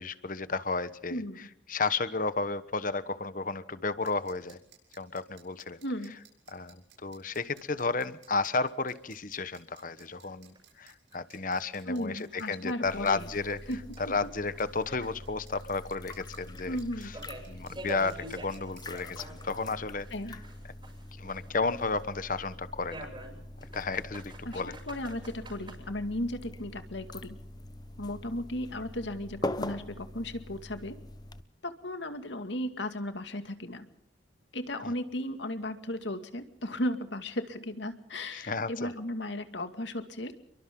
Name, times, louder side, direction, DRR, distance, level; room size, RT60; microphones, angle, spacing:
voice 1, 0.0-1.2 1.7-4.6 4.9-5.8 6.5-13.6 14.1-16.8 17.0-17.1 17.5-20.1 21.2-23.1 23.7-24.7 34.8-34.9 38.3-38.9, left 3 dB, 45° left, 14 dB, 1.2 m, -32 dB
voice 2, 1.1-1.5 5.8-6.1 11.9-13.3 13.7-13.8 14.1-14.3 16.7-17.1 20.1-20.4 24.5-27.4 28.0-31.0 31.6-33.9 34.5-40.3, left 1 dB, 75° left, 8 dB, 2.3 m, -35 dB
sound 1, 4.0-19.0, right 10 dB, 75° right, 7.0 m, -59 dB
sound 2, 8.9-9.0 9.4-9.5 10.0-10.1 10.5-10.6 11.1-11.2 11.7-11.8 12.3-14.8 15.0-19.7 20.0-22.0 22.9-25.8, right 1 dB, 25° right, 6.7 m, -47 dB
sound 3, 12.8-31.4, left 1 dB, 20° left, 0.9 m, -43 dB
29.5 x 23.0 x 3.9 m, 0.71 s
head